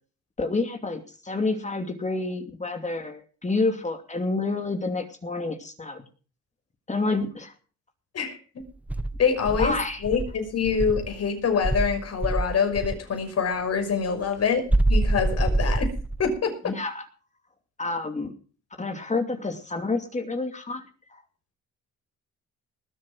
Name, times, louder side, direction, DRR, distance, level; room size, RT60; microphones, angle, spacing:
voice 1, 0.4-6.0 6.9-7.5 9.6-10.0 16.6-17.1 17.8-18.3 18.8-20.8 21.1-21.2, left 3 dB, 25° left, 6 dB, 2.6 m, -29 dB
Insect, 8.9-11.1 11.6-13.0 14.7-16.4, right 2 dB, 5° right, 0.9 m, -25 dB
voice 2, 9.2-9.7 10.0-15.9 16.2-16.5, left 6 dB, 55° left, 4 dB, 5.9 m, -25 dB
20.0 x 7.6 x 6.1 m, 0.37 s
cardioid pair, 90°, 30 cm